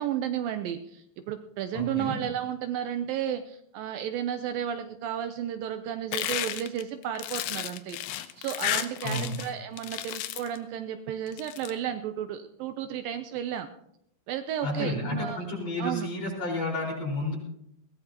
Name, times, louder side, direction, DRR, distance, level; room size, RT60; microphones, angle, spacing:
voice 1, 0.0-13.7 14.3-15.4 15.8-16.1, right 10 dB, 80° right, 8 dB, 2.2 m, -33 dB
voice 2, 1.7-2.2 9.0-9.3 14.6-17.3, left 1 dB, 45° left, -3 dB, 5.8 m, -31 dB
sound 1, 6.1-9.5 9.8-10.6 11.3-11.7, left 13 dB, 85° left, 2.7 m, -32 dB
21.0 x 17.0 x 2.9 m, 0.75 s
omnidirectional pair, 4.4 m